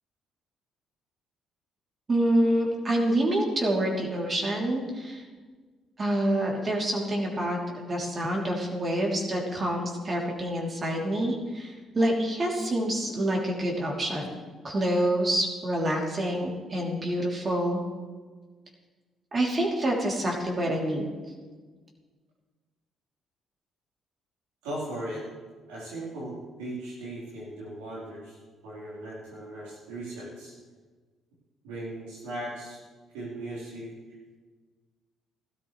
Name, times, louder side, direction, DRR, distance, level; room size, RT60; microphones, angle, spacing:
voice 1, 2.1-5.2 6.0-14.4 14.6-17.8 19.3-21.1, right 1 dB, 40° right, -1 dB, 3.3 m, -27 dB
voice 2, 24.6-25.3 25.7-28.4 28.6-30.5 31.6-32.8 33.1-33.9, right 1 dB, 85° right, -8 dB, 4.1 m, -38 dB
15.5 x 13.0 x 3.3 m, 1.4 s
supercardioid pair, 60°, 0 cm